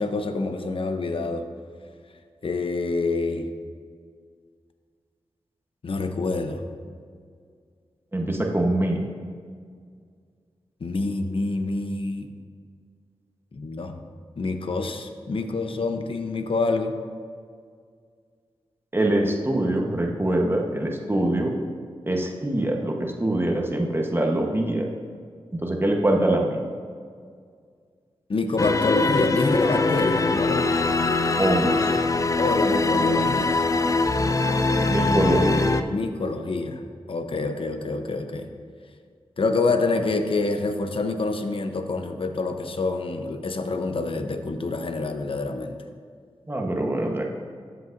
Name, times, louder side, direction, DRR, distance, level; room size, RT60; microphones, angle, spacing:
voice 1, 0.0-1.5 2.4-3.5 5.8-6.6 10.8-12.3 13.5-14.0 14.4-16.9 28.3-30.7 32.4-33.6 35.9-36.8 37.1-38.5 39.4-45.8, left 3 dB, 60° left, 7 dB, 0.8 m, -27 dB
voice 2, 8.1-9.0 18.9-21.5 22.1-24.9 25.5-26.6 31.4-31.9 34.5-34.6 34.9-35.7 46.5-47.2, right 1 dB, 20° right, 1 dB, 1.1 m, -24 dB
sound 1, 28.6-35.8, left 3 dB, 30° left, 0.5 m, -22 dB
14.0 x 7.9 x 2.6 m, 2.1 s
cardioid pair, 60°, 10 cm